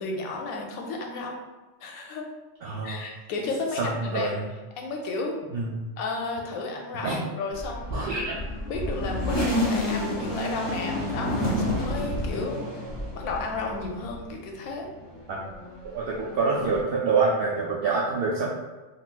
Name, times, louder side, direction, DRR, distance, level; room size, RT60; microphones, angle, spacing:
voice 1, 0.0-1.4 1.8-2.3 2.8-4.3 4.8-5.4 6.0-8.0 8.7-12.6 13.1-14.9, left 3 dB, 90° left, 1 dB, 1.0 m, -32 dB
voice 2, 2.6-3.0 3.8-4.5 5.5-5.9 7.0-7.2 7.9-8.4 15.3-15.4 15.9-18.5, right 4 dB, 65° right, -5 dB, 0.5 m, -26 dB
sound 1, 7.5-14.4 14.8-16.8, left 1 dB, 25° left, 0.8 m, -30 dB
3.8 x 2.3 x 2.3 m, 1.2 s
omnidirectional pair, 1.4 m